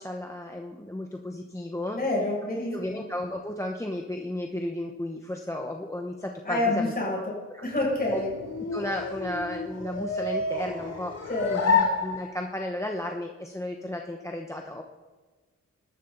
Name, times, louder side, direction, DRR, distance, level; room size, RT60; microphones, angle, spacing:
voice 1, 0.0-2.0 2.7-6.9 7.5-7.6 8.1-8.2 8.7-14.8, left 1 dB, 10° left, 2 dB, 0.9 m, -34 dB
voice 2, 1.9-3.0 6.4-8.3 11.3-11.9, left 2 dB, 30° left, -4 dB, 6.5 m, -28 dB
sound 1, 7.7-12.7, left 4 dB, 60° left, 2.9 m, -30 dB
24.0 x 13.0 x 3.9 m, 1.3 s
wide cardioid pair, 150°, 30 cm